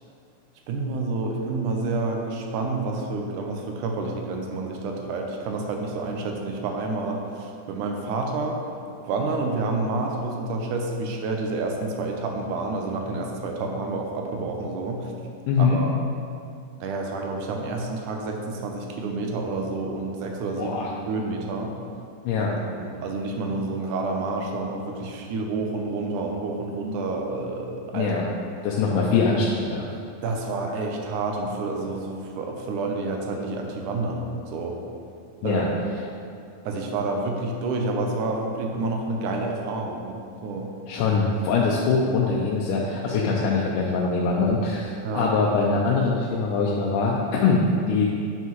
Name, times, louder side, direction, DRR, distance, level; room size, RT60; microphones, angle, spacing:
voice 1, 0.7-8.6 9.0-15.1 15.6-16.0 16.8-21.7 22.4-22.5 22.7-28.1 28.9-29.0 30.2-34.8 35.4-35.8 36.7-40.7 45.0-45.3, right 3 dB, 80° right, 2 dB, 2.2 m, -29 dB
voice 2, 15.5-15.8 20.6-20.9 22.3-22.5 27.9-28.2 28.6-29.9 35.4-35.7 40.9-48.1, left 4 dB, 90° left, -3 dB, 2.3 m, -23 dB
9.3 x 5.6 x 3.1 m, 2.4 s
omnidirectional pair, 3.6 m